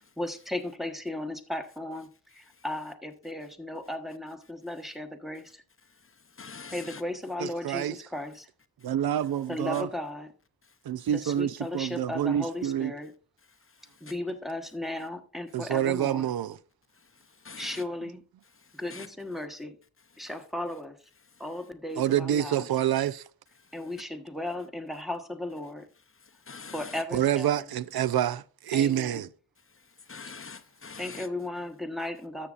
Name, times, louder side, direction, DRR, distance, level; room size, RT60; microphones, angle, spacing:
voice 1, 0.0-5.6 6.7-8.5 9.5-10.3 11.1-13.1 14.0-16.3 17.6-18.2 18.7-19.8 20.2-21.0 21.4-22.7 23.7-25.9 26.7-27.6 28.7-29.2 31.0-32.5, left 1 dB, ahead, 1.2 m, -36 dB
voice 2, 6.4-7.0 17.4-17.8 18.9-19.1 26.5-27.0 30.1-31.3, left 5 dB, 35° left, 0.6 m, -43 dB
voice 3, 7.4-8.0 8.8-9.9 10.8-12.9 15.5-16.6 22.0-23.2 27.1-29.3, right 10 dB, 75° right, 0.5 m, -27 dB
13.5 x 7.3 x 2.4 m
wide cardioid pair, 110°, 37 cm